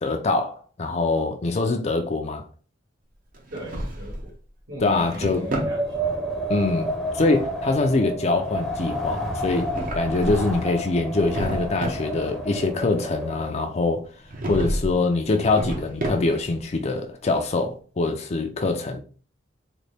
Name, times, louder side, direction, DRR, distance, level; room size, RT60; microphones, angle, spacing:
voice 1, 0.0-2.4 4.8-5.4 6.5-6.9 7.1-14.0 14.4-19.0, left 3 dB, 35° left, 0.4 m, -24 dB
Drawer open or close, 3.3-4.3 4.8-5.8 9.4-10.6 11.0-12.1 14.3-15.0 15.3-16.6, right 1 dB, 50° right, 0.7 m, -31 dB
voice 2, 3.5-4.3 4.7-6.0, right 1 dB, 70° right, 1.5 m, -38 dB
Wind, 5.3-13.7, right 1 dB, ahead, 0.7 m, -30 dB
3.9 x 2.2 x 3.3 m
head